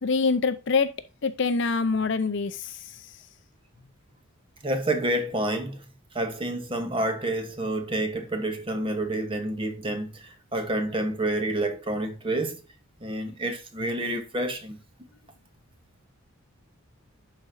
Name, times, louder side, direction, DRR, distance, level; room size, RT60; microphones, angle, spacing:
voice 1, 0.0-0.9 1.2-2.8, left 4 dB, 55° left, 0.6 m, -25 dB
voice 2, 4.6-5.8 6.1-12.6 13.0-14.8, right 1 dB, 25° right, 0.9 m, -29 dB
11.5 x 4.3 x 2.6 m
head